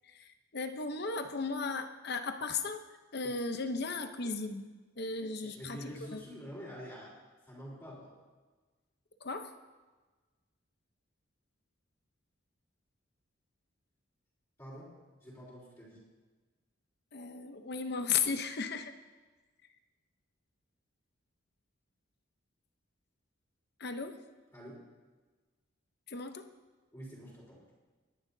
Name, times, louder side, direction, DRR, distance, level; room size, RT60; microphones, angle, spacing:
voice 1, 0.1-2.8 3.1-4.7 5.0-5.8 6.1-6.2 9.2-9.5 17.1-18.9 23.8-24.2 26.1-26.5, left 4 dB, 50° left, 8 dB, 0.8 m, -35 dB
voice 2, 5.4-7.2 7.5-8.1 14.6-14.9 15.2-16.0 24.5-24.8 26.9-27.6, equal, 15° left, -9 dB, 4.0 m, -47 dB
23.0 x 11.0 x 2.8 m, 1.3 s
head